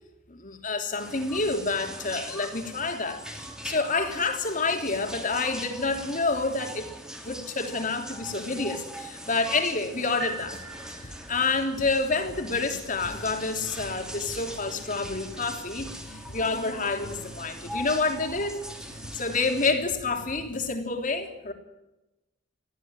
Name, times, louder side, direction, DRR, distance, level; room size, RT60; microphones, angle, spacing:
voice 1, 0.3-6.9 7.2-10.6 10.9-21.5, left 3 dB, 45° left, 5 dB, 3.3 m, -28 dB
sound 1, 1.0-19.7, equal, 5° right, 3.2 m, -41 dB
sound 2, 10.2-11.7, right 4 dB, 75° right, 2.1 m, -40 dB
sound 3, 10.4-20.7, equal, 75° left, 3.0 m, -46 dB
21.5 x 14.5 x 9.0 m, 0.96 s
head